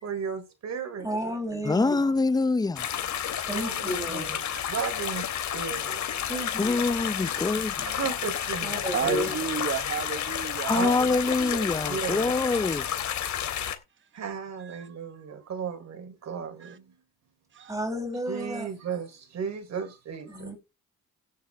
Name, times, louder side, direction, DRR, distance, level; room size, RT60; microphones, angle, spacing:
voice 1, 0.0-1.3 3.5-6.1 7.9-9.2 10.7-10.9 11.9-12.4 14.1-16.9 17.6-17.7 18.3-20.5, right 6 dB, 60° right, 3.6 m, -35 dB
voice 2, 1.0-2.0 3.5-4.4 6.3-6.9 8.6-9.4 17.7-18.7 20.3-20.6, left 1 dB, 10° right, 7.4 m, -32 dB
voice 3, 1.6-3.0 6.6-7.9 10.6-12.9, left 3 dB, 15° left, 0.7 m, -25 dB
sound 1, 2.8-13.8, left 9 dB, 65° left, 3.1 m, -31 dB
voice 4, 4.5-4.9 8.9-11.7 14.6-14.8 16.6-16.8 17.5-17.7, right 7 dB, 40° right, 1.0 m, -33 dB
16.5 x 9.3 x 3.5 m
cardioid pair, 90°, 30 cm